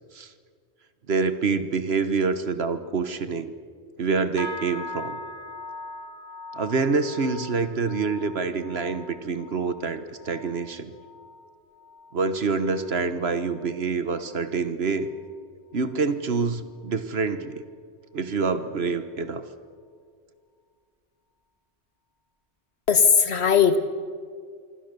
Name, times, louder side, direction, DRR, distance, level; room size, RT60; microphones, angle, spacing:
voice 1, 1.1-3.5 4.0-5.2 6.5-10.9 12.1-15.1 15.7-17.6 18.1-19.4, right 4 dB, 65° right, 11 dB, 1.5 m, -26 dB
sound 1, 4.4-13.9 14.2-14.7 15.1-15.4 15.9-16.0, left 2 dB, 20° left, 2.3 m, -42 dB
voice 2, 22.9-23.8, left 6 dB, 70° left, 10 dB, 1.7 m, -18 dB
26.0 x 24.0 x 6.8 m, 2.1 s
omnidirectional pair, 1.1 m